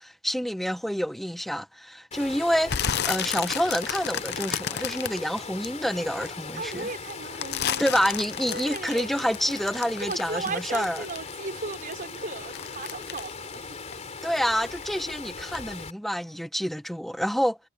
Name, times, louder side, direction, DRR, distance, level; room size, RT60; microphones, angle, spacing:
voice 1, 0.0-6.9 7.8-11.0 14.2-17.6, equal, ahead, 1.1 m, -28 dB
Water, 2.1-15.9, left 4 dB, 35° left, 3.5 m, -39 dB
sound 1, 2.7-6.3 6.7-11.5 11.7-14.4 14.7-15.1 15.5-15.6, left 9 dB, 50° left, 0.7 m, -32 dB
voice 2, 6.6-7.9 8.5-9.1 10.0-13.7, right 3 dB, 40° right, 4.5 m, -36 dB
head